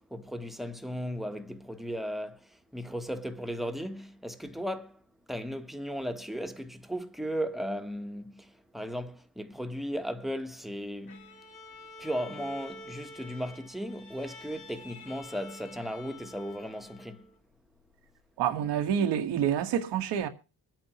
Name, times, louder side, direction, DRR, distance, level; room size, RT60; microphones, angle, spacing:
voice 1, 0.0-5.0 5.3-11.3 12.0-17.3, equal, ahead, 1.2 m, -36 dB
Bowed string instrument, 11.1-17.4, left 2 dB, 65° left, 4.3 m, -48 dB
voice 2, 18.4-20.3, right 9 dB, 85° right, 1.7 m, -27 dB
24.5 x 8.8 x 3.0 m
cardioid pair, 100°, 40 cm